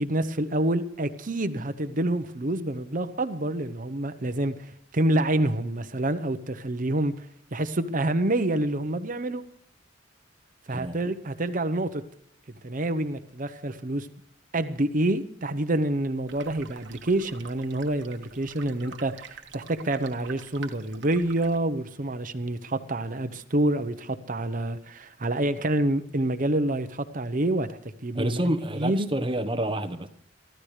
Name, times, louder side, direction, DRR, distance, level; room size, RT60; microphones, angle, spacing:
voice 1, 0.0-7.3 7.5-9.4 10.7-12.0 12.6-14.1 14.5-29.1, right 1 dB, 45° right, 0.9 m, -27 dB
sound 1, 16.3-21.6, right 5 dB, 65° right, 1.5 m, -46 dB
voice 2, 28.1-30.1, right 1 dB, 25° right, 1.1 m, -28 dB
23.5 x 14.5 x 3.3 m
head